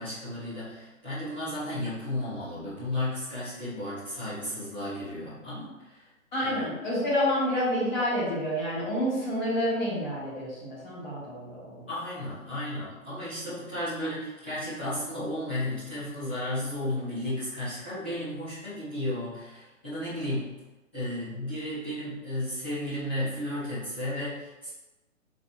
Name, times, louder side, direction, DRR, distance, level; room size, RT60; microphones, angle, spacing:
voice 1, 0.0-6.0 6.4-6.6 11.9-20.5 20.9-24.7, left 1 dB, 10° left, -16 dB, 0.4 m, -33 dB
voice 2, 6.3-11.8, equal, 35° left, -8 dB, 1.5 m, -28 dB
4.0 x 3.0 x 2.3 m, 1.1 s
figure-of-eight pair, 135°, 41 cm